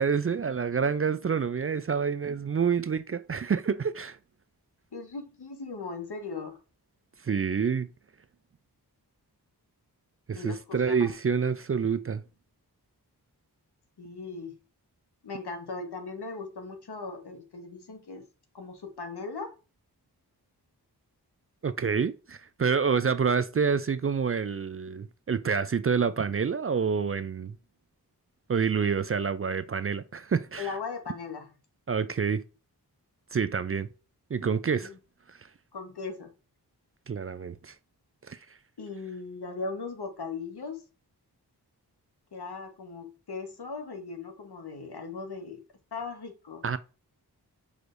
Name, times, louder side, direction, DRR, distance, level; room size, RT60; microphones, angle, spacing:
voice 1, 0.0-4.2 7.2-7.9 10.3-12.2 21.6-27.6 28.5-30.7 31.9-32.4 33.3-33.9 34.3-34.9 37.1-37.7 38.3-38.4 46.6-46.8, right 6 dB, 35° right, 0.4 m, -27 dB
voice 2, 4.9-6.6 10.3-11.1 14.0-14.5 15.2-18.2 18.5-19.5 30.6-31.5 34.8-35.0 35.7-36.3 38.8-40.8 42.3-45.6 45.9-46.6, left 4 dB, 75° left, 1.3 m, -38 dB
6.1 x 3.4 x 2.6 m
cardioid pair, 45°, 40 cm